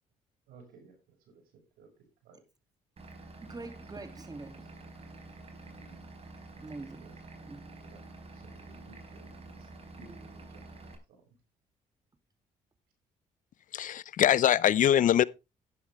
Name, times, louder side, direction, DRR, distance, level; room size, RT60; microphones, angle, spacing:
voice 1, 0.5-1.4 1.8-2.4 5.6-6.1 7.0-7.1 7.8-8.0 8.3-9.7 10.0-10.6 11.1-11.2, right 4 dB, 90° right, 5.9 m, -57 dB
Vehicle / Engine, 3.0-11.0, right 2 dB, 40° right, 4.4 m, -48 dB
voice 2, 3.4-4.7 6.6-7.1 7.5-7.7 10.0-10.4, right 3 dB, 25° right, 2.7 m, -45 dB
voice 3, 13.7-15.2, left 10 dB, 60° left, 0.6 m, -23 dB
11.5 x 10.5 x 3.4 m
supercardioid pair, 70°, 15 cm